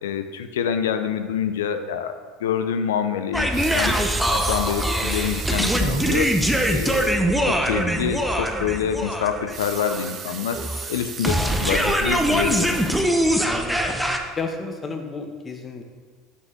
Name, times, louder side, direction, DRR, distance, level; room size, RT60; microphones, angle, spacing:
voice 1, 0.0-4.0 4.3-6.3 6.7-10.6 10.9-12.8, left 8 dB, 85° left, 9 dB, 0.4 m, -26 dB
sound 1, 3.3-14.2, equal, 5° right, 0.7 m, -23 dB
Water tap faucet / Sink (filling or washing) / Liquid, 3.5-7.3 7.7-7.8 8.2-8.3 9.4-13.5 14.1-14.2, right 8 dB, 50° right, 0.5 m, -37 dB
voice 2, 6.4-6.8 13.4-13.8 14.3-15.8, left 4 dB, 30° left, 5 dB, 0.9 m, -32 dB
6.0 x 5.5 x 3.8 m, 1.5 s
hypercardioid pair, 80°, 0 cm